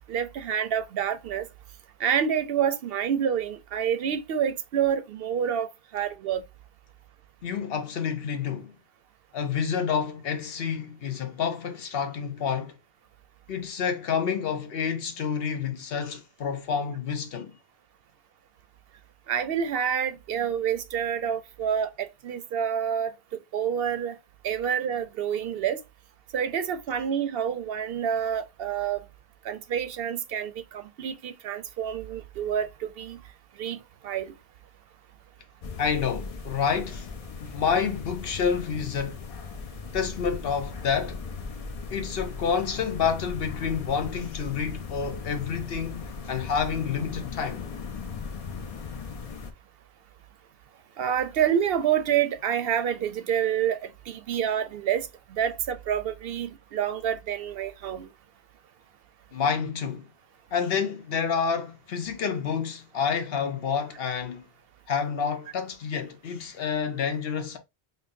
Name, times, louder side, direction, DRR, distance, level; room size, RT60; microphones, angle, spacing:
voice 1, 0.1-1.5 2.0-6.4 19.3-23.1 23.5-24.2 24.4-25.8 26.3-29.0 29.4-33.2 33.6-33.8 34.0-34.3 51.0-58.1, right 8 dB, 70° right, 0.7 m, -28 dB
voice 2, 7.4-8.7 9.3-12.7 13.5-17.5 35.8-37.1 37.4-39.2 39.9-41.2 41.9-47.6 59.3-60.1 60.5-64.4 64.9-67.6, left 6 dB, 65° left, 0.9 m, -29 dB
sound 1, 35.6-49.5, left 5 dB, 45° left, 0.5 m, -38 dB
5.3 x 2.1 x 2.5 m
omnidirectional pair, 1.1 m